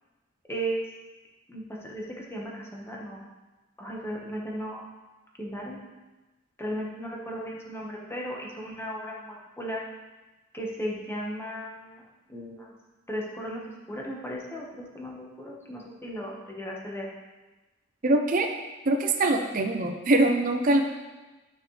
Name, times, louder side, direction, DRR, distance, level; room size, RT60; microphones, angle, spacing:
voice 1, 0.5-0.8 1.5-3.2 3.8-4.9 5.4-5.8 6.6-9.8 10.5-12.0 12.3-12.7 13.1-13.6 13.9-17.1, equal, 10° left, -2 dB, 1.4 m, -36 dB
voice 2, 18.0-18.5 18.8-20.8, right 2 dB, 45° right, 3 dB, 0.7 m, -23 dB
12.5 x 6.2 x 3.3 m, 1.2 s
head